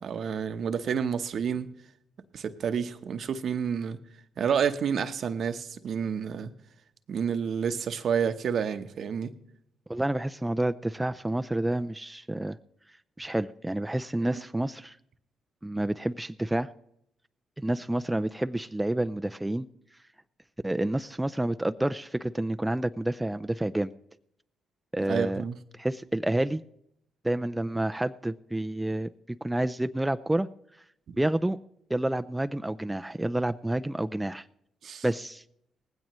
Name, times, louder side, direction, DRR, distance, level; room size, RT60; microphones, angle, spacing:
voice 1, 0.0-1.7 2.3-4.0 4.4-6.5 7.1-9.3 25.1-25.6 31.1-31.2 34.8-35.0, right 7 dB, 65° right, 0.9 m, -29 dB
voice 2, 9.9-12.6 13.2-15.0 15.6-16.7 17.6-19.7 20.6-23.9 24.9-25.4 25.7-26.6 27.2-30.5 31.2-31.6 31.9-34.5 35.0-35.4, right 1 dB, 10° right, 0.4 m, -29 dB
18.5 x 16.0 x 3.1 m
supercardioid pair, 60°, 0 cm